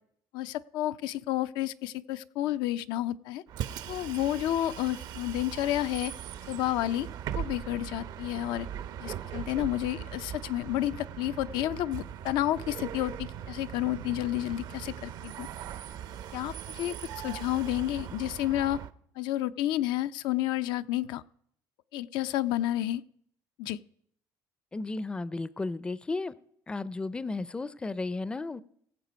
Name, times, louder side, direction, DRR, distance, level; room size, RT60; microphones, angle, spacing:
voice 1, 0.3-3.4 3.9-6.1 6.5-7.1 7.3-8.7 9.0-15.5 16.3-18.8 19.2-21.2 21.9-23.0 23.6-23.8, left 14 dB, 85° left, 0.5 m, -30 dB
Bus, 3.5-18.9, right 10 dB, 65° right, 0.7 m, -40 dB
voice 2, 24.7-26.3 26.7-28.6, left 3 dB, 15° left, 0.4 m, -34 dB
17.0 x 7.4 x 5.1 m
cardioid pair, 125°, 7 cm